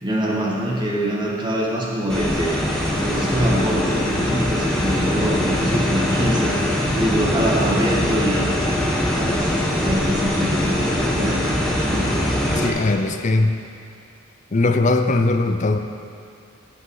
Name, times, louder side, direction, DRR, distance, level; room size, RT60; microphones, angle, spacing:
voice 1, 0.0-2.6 2.9-6.5 6.9-9.5 9.8-11.5 11.8-12.1, equal, 20° right, -4 dB, 1.7 m, -24 dB
sound 1, 2.1-12.7, left 1 dB, 5° left, 1.2 m, -22 dB
voice 2, 12.5-13.6 14.5-15.8, left 2 dB, 35° left, 7 dB, 0.5 m, -19 dB
15.5 x 6.2 x 4.8 m, 2.3 s
head